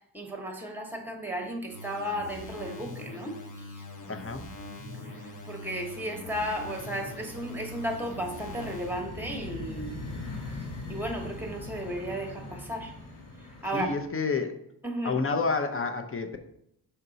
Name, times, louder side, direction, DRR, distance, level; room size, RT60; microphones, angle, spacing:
voice 1, 0.1-3.4 3.7-3.8 5.0-5.2 5.4-10.0 10.9-12.9 13.6-13.9 14.8-15.2, equal, 5° right, 3 dB, 1.0 m, -34 dB
sound 1, 1.0-1.5 1.8-2.6 2.9-14.1, left 2 dB, 80° left, 1.9 m, -43 dB
sound 2, 1.7-9.1, left 1 dB, 50° left, 1.1 m, -43 dB
voice 2, 4.1-4.5 13.7-14.6 15.0-16.4, left 4 dB, 35° left, 7 dB, 0.6 m, -29 dB
5.6 x 4.4 x 3.9 m, 0.75 s
wide cardioid pair, 120°, 39 cm